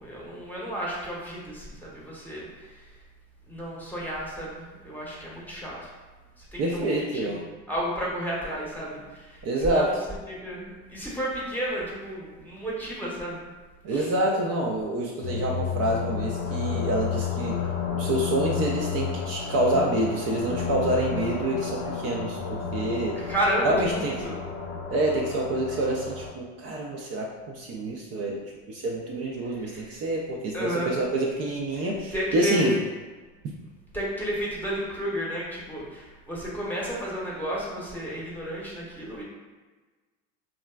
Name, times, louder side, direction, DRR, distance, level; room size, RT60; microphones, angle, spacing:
voice 1, 0.0-2.9 3.5-5.9 6.4-10.0 10.3-13.4 13.9-14.1 23.2-24.4 29.6-29.8 30.5-31.0 31.8-31.9 32.1-32.7 33.9-39.2, equal, 5° left, -6 dB, 0.8 m, -32 dB
voice 2, 6.6-7.4 9.4-9.9 13.8-17.6 17.9-23.2 23.6-24.1 24.9-32.7, right 1 dB, 45° right, -2 dB, 0.5 m, -27 dB
sound 1, 15.2-26.3, left 6 dB, 40° left, 0.4 m, -31 dB
2.9 x 2.3 x 2.2 m, 1.3 s
supercardioid pair, 85°, 34 cm